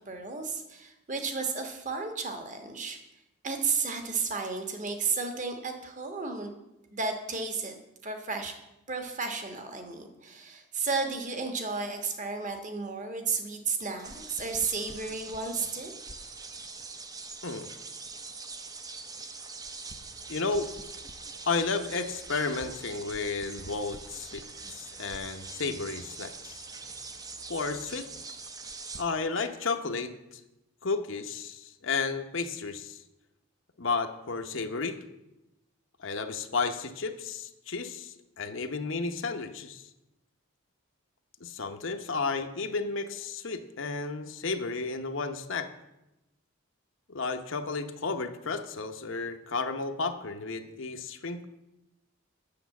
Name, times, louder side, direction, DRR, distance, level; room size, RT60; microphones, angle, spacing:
voice 1, 0.0-3.0 3.4-6.5 6.9-7.8 8.0-8.6 8.9-15.9, right 4 dB, 35° right, 5 dB, 1.3 m, -33 dB
sound 1, 14.0-29.0, right 4 dB, 15° right, 0.6 m, -43 dB
sound 2, 20.0-27.9, right 2 dB, 80° right, 2.2 m, -59 dB
voice 2, 20.3-20.7 21.5-24.4 24.7-26.6 27.5-28.1 29.0-30.4 30.8-33.0 33.8-35.0 36.0-39.8 41.4-45.7 47.1-51.5, left 4 dB, 60° left, 6 dB, 0.8 m, -32 dB
8.6 x 6.8 x 8.1 m, 0.93 s
head